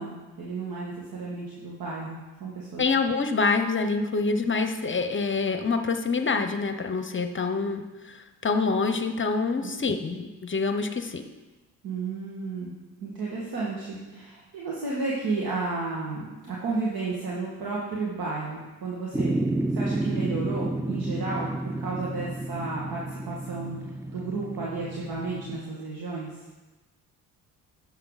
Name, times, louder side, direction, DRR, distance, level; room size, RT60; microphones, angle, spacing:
voice 1, 0.0-2.8 9.6-9.8 11.8-12.7 13.0-19.4 19.7-21.5 21.8-23.8 24.1-26.3, right 3 dB, 70° right, -5 dB, 2.1 m, -32 dB
voice 2, 2.8-11.2, left 4 dB, 30° left, 7 dB, 0.9 m, -26 dB
sound 1, 19.1-25.6, right 2 dB, 5° right, 0.5 m, -31 dB
10.5 x 7.2 x 4.1 m, 1.2 s
supercardioid pair, 65°, 37 cm